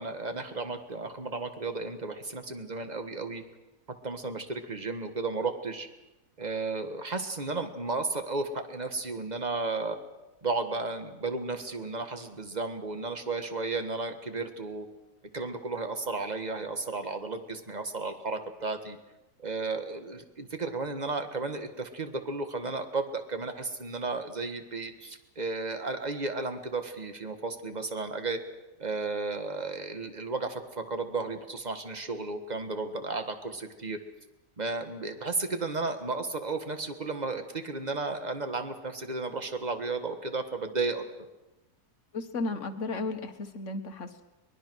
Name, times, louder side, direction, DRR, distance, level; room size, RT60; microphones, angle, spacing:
voice 1, 0.0-3.4 4.0-5.9 6.4-10.0 10.4-14.9 15.3-19.0 19.4-28.4 28.8-34.0 34.6-41.0, right 3 dB, 25° right, 7 dB, 1.7 m, -33 dB
voice 2, 42.1-44.2, left 3 dB, 50° left, 7 dB, 1.8 m, -34 dB
23.0 x 21.0 x 6.4 m, 1.0 s
omnidirectional pair, 1.7 m